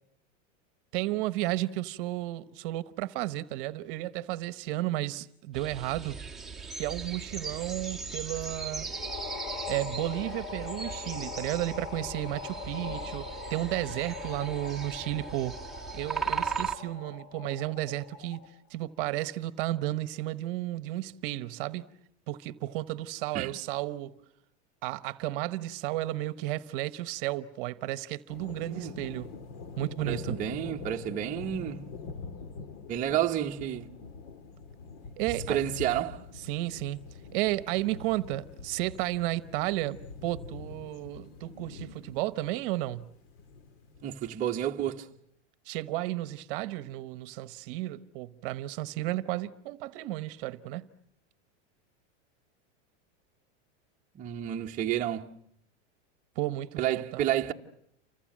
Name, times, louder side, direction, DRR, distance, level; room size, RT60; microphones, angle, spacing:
voice 1, 0.9-6.2 6.7-8.9 9.7-15.6 15.9-18.4 18.7-21.8 22.3-24.1 24.8-29.3 29.8-30.4 35.2-35.6 36.3-37.0 37.3-43.1 45.7-50.9 56.4-57.3, right 16 dB, 45° right, 1.0 m, -33 dB
sound 1, 5.5-16.8, right 5 dB, ahead, 1.3 m, -38 dB
sound 2, 8.8-18.6, left 5 dB, 25° left, 1.1 m, -41 dB
sound 3, 28.3-44.4, left 4 dB, 50° left, 1.9 m, -44 dB
voice 2, 30.1-31.8 32.9-33.9 35.5-36.2 44.0-45.1 54.2-55.3 56.8-57.5, right 11 dB, 20° right, 1.0 m, -30 dB
29.0 x 25.5 x 7.5 m
supercardioid pair, 160°, 36 cm